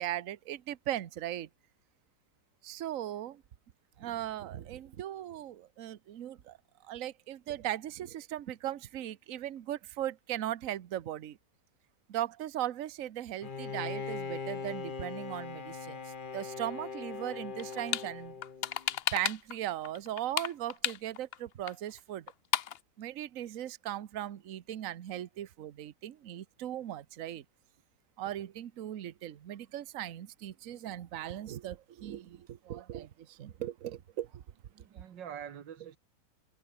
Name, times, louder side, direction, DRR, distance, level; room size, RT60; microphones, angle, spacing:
voice 1, 0.0-1.5 2.6-3.4 4.0-6.6 6.8-11.4 12.1-16.0 16.3-18.4 19.1-22.3 23.0-27.4 28.2-34.4, right 12 dB, 55° right, 1.2 m, -38 dB
Bowed string instrument, 13.4-19.0, left 5 dB, 30° left, 1.2 m, -40 dB
sound 1, 17.6-18.1 18.4-19.6 19.8-21.4 21.7-21.8 22.0-22.1 22.3-22.8, left 9 dB, 70° left, 0.5 m, -33 dB
voice 2, 34.7-36.0, right 8 dB, 90° right, 2.1 m, -46 dB
omnidirectional pair, 1.9 m